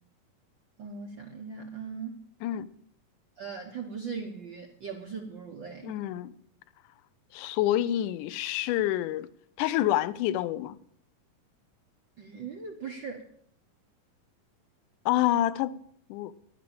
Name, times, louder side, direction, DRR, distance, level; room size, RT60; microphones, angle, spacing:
voice 1, 0.8-2.2 3.4-6.0 12.2-13.3, right 5 dB, 75° right, 1.0 m, -39 dB
voice 2, 5.8-6.3 7.3-9.3 9.6-10.8 15.1-15.8 16.1-16.3, left 13 dB, 80° left, 2.0 m, -27 dB
11.0 x 9.7 x 8.6 m
omnidirectional pair, 4.0 m